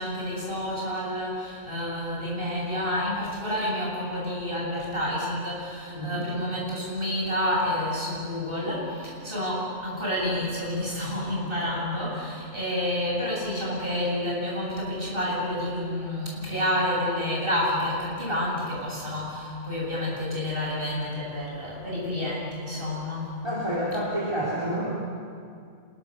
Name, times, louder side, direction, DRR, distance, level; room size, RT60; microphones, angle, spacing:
voice 1, 0.0-23.4, left 1 dB, 35° right, -4 dB, 8.2 m, -29 dB
voice 2, 5.9-6.3 23.4-24.8, equal, 20° right, -8 dB, 4.7 m, -28 dB
27.5 x 21.5 x 6.8 m, 2.3 s
omnidirectional pair, 1.6 m